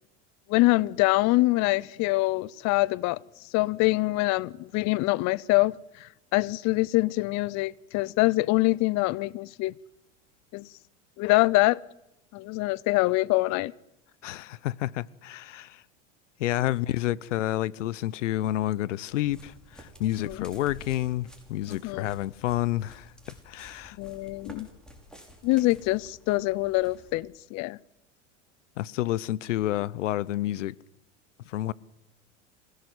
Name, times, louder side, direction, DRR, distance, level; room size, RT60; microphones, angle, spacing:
voice 1, 0.5-3.2 3.5-9.7 10.5-10.7 11.2-11.8 12.3-13.7 20.2-20.4 21.7-22.0 24.0-24.7 25.4-27.8, left 21 dB, 50° left, 0.7 m, -25 dB
voice 2, 14.2-15.8 16.4-23.1 23.5-24.0 28.8-30.7 31.5-31.7, left 14 dB, 85° left, 0.8 m, -29 dB
sound 1, 19.1-27.2, equal, ahead, 6.3 m, -51 dB
26.0 x 17.0 x 8.0 m
hypercardioid pair, 100°, 36 cm